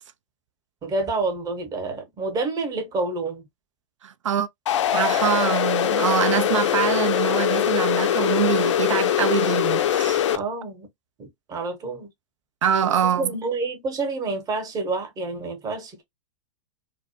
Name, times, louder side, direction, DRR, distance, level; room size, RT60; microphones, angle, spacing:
voice 1, 0.8-3.4 10.3-10.9 11.2-12.1 12.8-16.0, right 3 dB, 25° right, 0.9 m, -28 dB
voice 2, 4.0-4.5 4.9-10.2 12.6-13.3, right 8 dB, 80° right, 0.4 m, -24 dB
sound 1, 4.7-10.4, left 10 dB, 70° left, 0.4 m, -22 dB
2.2 x 2.1 x 2.9 m
hypercardioid pair, 105°, 16 cm